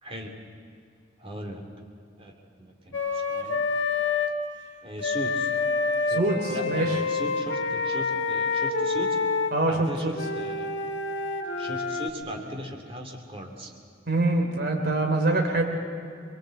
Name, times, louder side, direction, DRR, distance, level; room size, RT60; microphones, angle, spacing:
voice 1, 0.0-0.4 1.2-1.7 2.2-3.6 4.8-5.5 6.1-6.2 6.5-9.2 9.7-10.7 11.6-13.7, equal, 30° right, 2 dB, 2.8 m, -38 dB
Wind instrument woodwind instrument, 2.9-4.3 5.0-9.5 10.1-12.1, left 4 dB, 80° left, 1.9 m, -27 dB
voice 2, 6.1-7.0 9.5-10.1 14.1-15.6, right 2 dB, 60° right, 3 dB, 3.2 m, -24 dB
24.0 x 22.0 x 7.8 m, 2.3 s
head